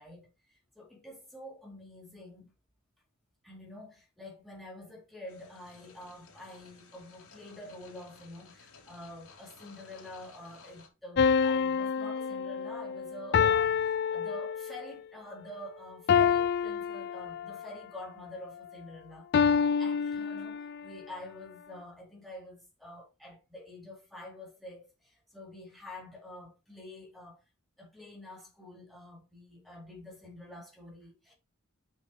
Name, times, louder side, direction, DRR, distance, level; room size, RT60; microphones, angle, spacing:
voice 1, 0.0-2.5 3.4-19.3 19.8-27.4 27.8-31.3, left 1 dB, ahead, 3.7 m, -47 dB
sound 1, 5.3-10.9, left 4 dB, 85° left, 3.1 m, -56 dB
sound 2, 11.2-14.9 16.1-17.7 19.3-20.9, left 6 dB, 50° left, 0.3 m, -27 dB
7.5 x 5.7 x 4.7 m
head